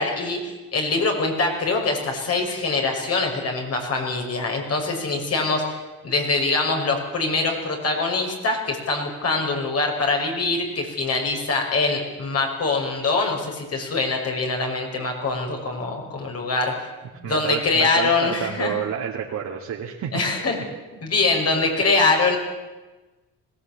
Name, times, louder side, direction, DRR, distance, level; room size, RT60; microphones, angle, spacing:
voice 1, 0.0-16.7 17.2-18.7 20.1-20.6 21.0-22.4, left 3 dB, 55° left, 1 dB, 5.9 m, -23 dB
voice 2, 17.2-20.2, right 8 dB, 70° right, -2 dB, 2.5 m, -29 dB
21.0 x 16.5 x 8.8 m, 1.2 s
cardioid pair, 90°, 30 cm